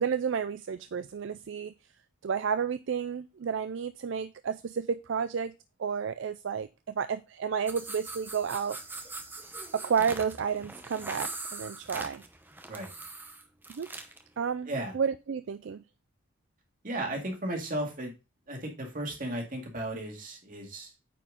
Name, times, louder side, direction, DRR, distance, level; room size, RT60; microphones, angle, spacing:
voice 1, 0.0-1.7 2.2-5.5 5.8-8.8 9.7-12.2 13.7-13.9 14.4-15.8, right 6 dB, 60° right, 0.4 m, -31 dB
sound 1, 7.7-14.2, right 2 dB, 10° right, 0.7 m, -42 dB
voice 2, 16.8-18.1 18.5-20.9, right 1 dB, 40° right, 2.2 m, -35 dB
9.1 x 4.6 x 3.6 m
head